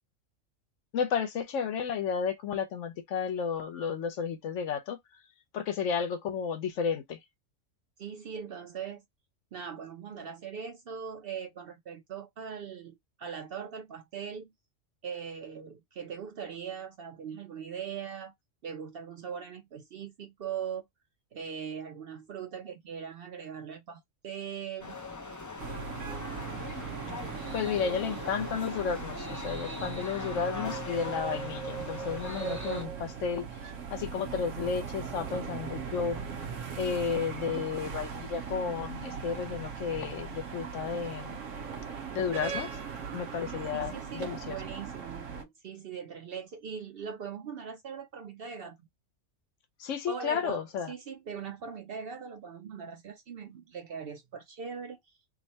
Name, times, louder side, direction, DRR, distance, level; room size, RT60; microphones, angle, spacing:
voice 1, 0.9-5.0 5.5-7.2 27.2-27.3 27.5-36.2 36.8-41.4 42.1-42.7 43.1-44.6 49.8-50.9, left 6 dB, 70° left, 1.0 m, -32 dB
voice 2, 8.0-9.0 9.5-14.5 15.0-18.3 18.6-20.8 21.3-25.0 43.7-48.8 50.1-50.6 50.9-55.0, right 7 dB, 60° right, 0.6 m, -40 dB
sound 1, 24.8-32.8, left 3 dB, 30° left, 0.3 m, -41 dB
sound 2, 25.6-45.4, right 6 dB, 75° right, 1.1 m, -39 dB
3.6 x 2.1 x 4.0 m
omnidirectional pair, 1.3 m